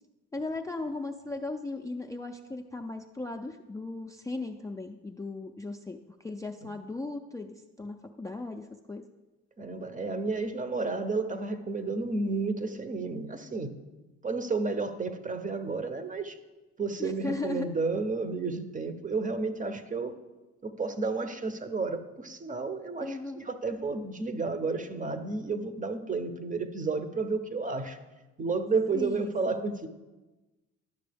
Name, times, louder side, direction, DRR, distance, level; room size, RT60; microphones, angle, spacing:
voice 1, 0.3-9.0 17.0-17.7 23.0-23.4 28.9-29.6, left 2 dB, 10° left, 4 dB, 0.4 m, -37 dB
voice 2, 9.6-13.7 14.2-16.4 16.8-20.1 20.6-28.0 28.4-29.9, right 4 dB, 25° right, 9 dB, 0.7 m, -31 dB
10.5 x 6.0 x 3.4 m, 1.1 s
cardioid pair, 90°, 30 cm